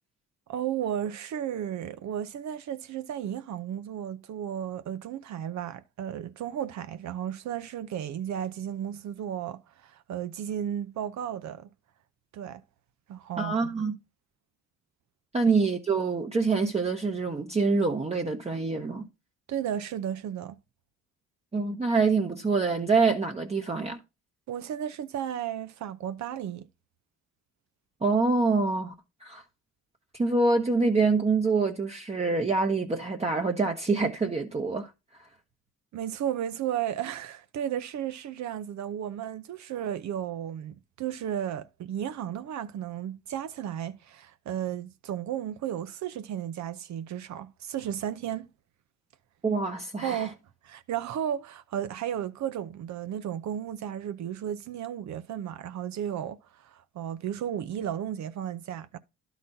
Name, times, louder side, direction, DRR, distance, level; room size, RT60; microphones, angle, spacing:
voice 1, 0.5-11.7 12.3-12.6 13.1-13.7 19.5-20.6 24.5-26.7 35.9-48.5 50.0-50.4 50.6-59.0, right 10 dB, 65° right, 0.7 m, -34 dB
voice 2, 13.4-13.9 15.3-19.0 21.5-24.0 28.0-28.9 29.2-29.4 30.1-34.9 49.4-50.3, right 4 dB, 20° right, 0.9 m, -26 dB
11.0 x 4.1 x 4.0 m
cardioid pair, 90°, 30 cm